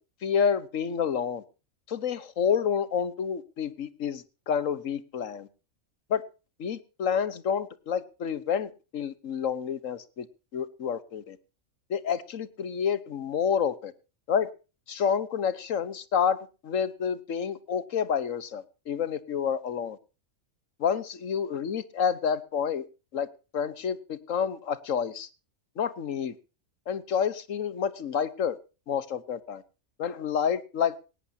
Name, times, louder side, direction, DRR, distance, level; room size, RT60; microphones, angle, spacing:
voice 1, 0.2-1.4 1.9-5.5 6.1-6.2 6.6-10.3 10.5-11.4 11.9-13.9 14.3-14.5 14.9-16.4 16.6-20.0 20.8-22.8 23.1-23.3 23.5-25.3 25.8-26.3 26.9-28.6 28.9-29.6 30.0-30.9, left 7 dB, 75° left, 1.5 m, -29 dB
18.0 x 18.0 x 2.8 m
omnidirectional pair, 1.4 m